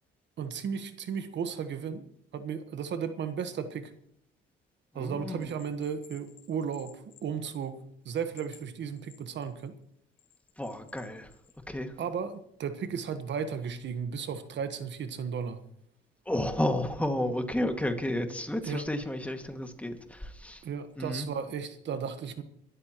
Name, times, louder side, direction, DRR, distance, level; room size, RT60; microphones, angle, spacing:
voice 1, 0.4-2.0 2.3-3.9 4.9-9.7 12.0-15.6 18.6-18.8 20.6-22.4, right 7 dB, 65° right, 9 dB, 1.3 m, -35 dB
voice 2, 4.9-5.5 10.6-11.3 11.7-12.0 16.3-20.6 21.0-21.3, left 1 dB, 5° left, 5 dB, 2.1 m, -32 dB
Bell, 5.4-7.8 8.2-9.7 10.2-11.6, left 8 dB, 70° left, 2.9 m, -56 dB
22.5 x 13.0 x 3.1 m, 0.71 s
cardioid pair, 90°, 20 cm